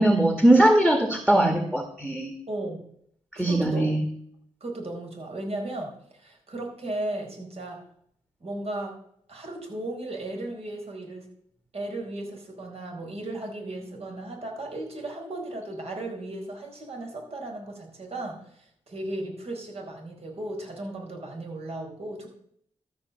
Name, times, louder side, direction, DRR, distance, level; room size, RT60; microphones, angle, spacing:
voice 1, 0.0-2.3 3.3-4.0, right 1 dB, 5° right, 5 dB, 1.9 m, -20 dB
voice 2, 2.5-2.8 3.3-3.9 4.6-7.8 8.4-8.9 9.3-11.3 11.7-22.3, right 1 dB, 55° right, 1 dB, 4.3 m, -35 dB
13.0 x 6.0 x 6.9 m, 0.68 s
cardioid pair, 55°, 12 cm